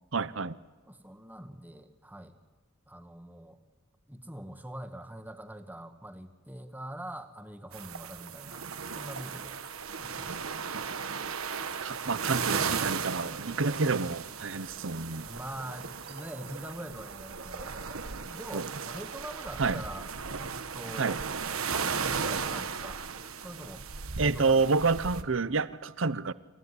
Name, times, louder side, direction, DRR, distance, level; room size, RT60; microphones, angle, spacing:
voice 1, 0.1-0.6 10.7-11.0 11.8-15.3 18.5-18.7 19.6-19.8 21.0-21.2 24.2-26.3, right 4 dB, 65° right, 0.8 m, -29 dB
voice 2, 0.9-2.4 2.9-3.6 4.1-8.6 9.0-9.6 10.0-10.5 15.2-17.7 18.2-20.1 20.4-21.2 21.7-23.0 23.4-23.9 24.2-24.6, right 1 dB, 10° right, 1.5 m, -43 dB
sound 1, 7.7-25.2, right 6 dB, 85° right, 1.3 m, -36 dB
sound 2, 16.0-21.3, right 2 dB, 50° right, 2.9 m, -53 dB
27.5 x 15.5 x 9.8 m
head